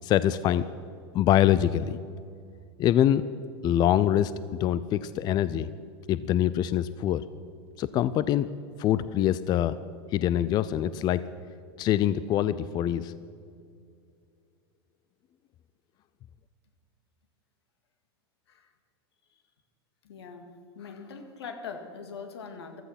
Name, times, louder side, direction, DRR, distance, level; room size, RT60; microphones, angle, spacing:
voice 1, 0.0-0.7 1.1-2.0 2.8-3.2 3.6-4.3 4.6-5.7 6.1-7.2 7.8-8.5 8.8-9.8 10.1-11.2 11.8-13.1, left 11 dB, 30° left, 15 dB, 0.4 m, -24 dB
voice 2, 20.0-20.5 20.7-22.8, left 5 dB, 85° left, 6 dB, 2.0 m, -42 dB
15.0 x 13.0 x 5.8 m, 2.3 s
hypercardioid pair, 125°, 13 cm